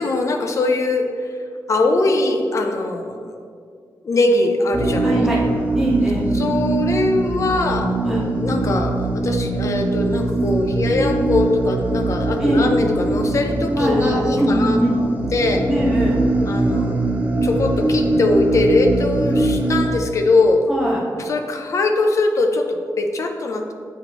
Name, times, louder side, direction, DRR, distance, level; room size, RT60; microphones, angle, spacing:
voice 1, 0.0-1.3 1.7-3.4 4.0-5.3 6.3-14.8 15.3-15.7 16.5-17.0 17.4-20.6 21.3-23.7, left 2 dB, 45° left, 4 dB, 0.6 m, -21 dB
sound 1, 4.7-19.9, right 2 dB, 20° right, 0.6 m, -22 dB
voice 2, 5.0-5.4 5.8-6.3 8.0-8.2 12.4-12.7 13.8-15.0 15.7-16.2 20.7-21.0, equal, 5° right, -6 dB, 1.3 m, -21 dB
7.8 x 5.1 x 3.0 m, 2.2 s
wide cardioid pair, 150°, 7 cm